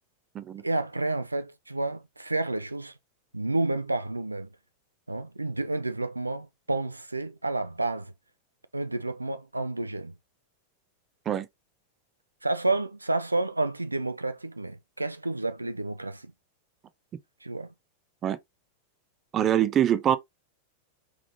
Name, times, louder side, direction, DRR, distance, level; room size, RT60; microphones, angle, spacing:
voice 1, 0.6-2.9 3.3-4.5 5.1-8.1 8.7-10.1 12.4-16.3 17.4-17.7, right 2 dB, 85° right, 0.4 m, -30 dB
voice 2, 19.3-20.2, right 10 dB, 30° right, 0.6 m, -24 dB
4.9 x 3.7 x 2.9 m
figure-of-eight pair, 90°, 0 cm